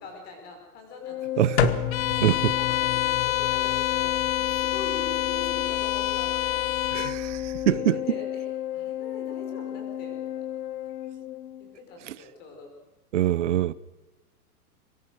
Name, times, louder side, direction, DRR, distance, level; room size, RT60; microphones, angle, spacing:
voice 1, 0.0-1.5 2.1-6.7 7.6-10.4 11.6-12.7, left 3 dB, 20° left, 5.2 m, -43 dB
Organ, 1.0-11.8, left 12 dB, 80° left, 1.3 m, -33 dB
voice 2, 1.4-1.8 2.2-2.3 6.9-7.9 13.1-13.7, right 13 dB, 50° right, 0.8 m, -24 dB
sound 1, 1.6-7.8, left 11 dB, 45° left, 1.5 m, -33 dB
Bowed string instrument, 1.9-7.2, left 15 dB, 60° left, 0.8 m, -27 dB
24.0 x 20.5 x 6.5 m
supercardioid pair, 175°, 46 cm